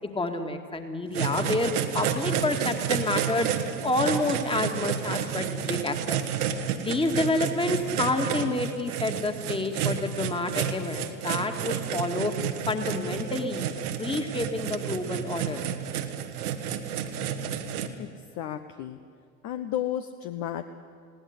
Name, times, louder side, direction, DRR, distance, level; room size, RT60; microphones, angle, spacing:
voice 1, 0.1-3.5 3.8-6.2 6.8-12.3 12.7-13.6 13.9-15.6, left 2 dB, 10° left, 6 dB, 2.1 m, -28 dB
sound 1, 1.1-17.9, right 8 dB, 65° right, 1.6 m, -31 dB
voice 2, 18.0-19.0 19.4-20.6, left 11 dB, 35° left, 8 dB, 0.9 m, -33 dB
20.0 x 17.0 x 9.9 m, 2.1 s
figure-of-eight pair, 75°, 49 cm